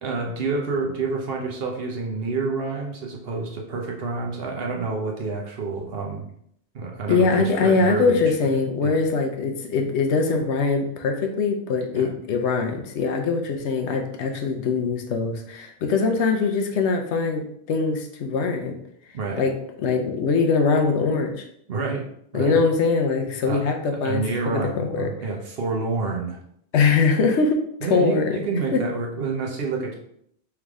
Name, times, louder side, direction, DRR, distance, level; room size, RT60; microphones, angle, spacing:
voice 1, 0.0-6.3 6.7-8.5 8.8-9.0 11.9-12.1 19.1-19.4 21.7-22.0 22.3-22.6 23.4-23.6 24.0-26.4 27.8-29.9, right 4 dB, 60° right, 0 dB, 1.0 m, -28 dB
voice 2, 7.1-18.8 19.3-21.5 22.3-24.2 24.5-25.1 26.7-28.4 28.7-28.8, left 4 dB, 75° left, 4 dB, 0.9 m, -22 dB
3.5 x 3.2 x 3.6 m, 0.70 s
omnidirectional pair, 1.2 m